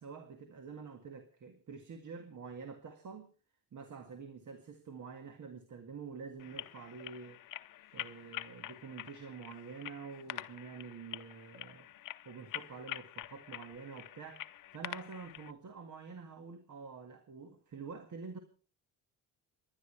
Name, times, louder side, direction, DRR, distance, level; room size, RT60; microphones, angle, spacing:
voice 1, 0.0-3.3 3.7-11.9 12.3-18.4, right 5 dB, 50° right, 6 dB, 2.0 m, -48 dB
sound 1, 6.4-15.5, left 13 dB, 55° left, 0.7 m, -46 dB
29.0 x 11.0 x 3.3 m, 0.36 s
cardioid pair, 90°, 39 cm